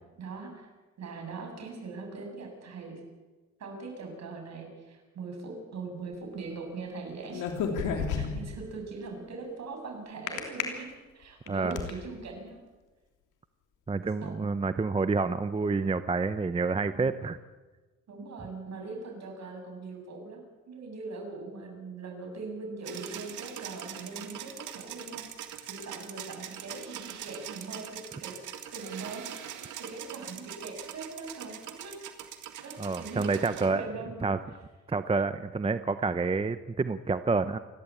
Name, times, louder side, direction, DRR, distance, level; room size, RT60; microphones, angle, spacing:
voice 1, 0.2-0.7 1.0-3.0 3.6-7.5 8.1-10.9 11.1-12.6 14.2-14.4 16.9-17.1 18.1-25.3 25.7-32.0 32.6-34.2, right 3 dB, 60° right, 2 dB, 7.2 m, -41 dB
sound 1, 7.3-8.6 10.3-10.6 11.2-11.9, left 6 dB, 90° left, 3.3 m, -30 dB
voice 2, 11.5-11.9 13.9-17.4 32.8-33.8 34.2-34.4 34.9-37.6, right 4 dB, 20° right, 12 dB, 0.8 m, -28 dB
sound 2, 22.8-33.7, right 10 dB, 80° right, 2.2 m, -42 dB
28.5 x 12.5 x 8.4 m, 1.3 s
cardioid pair, 90°, 30 cm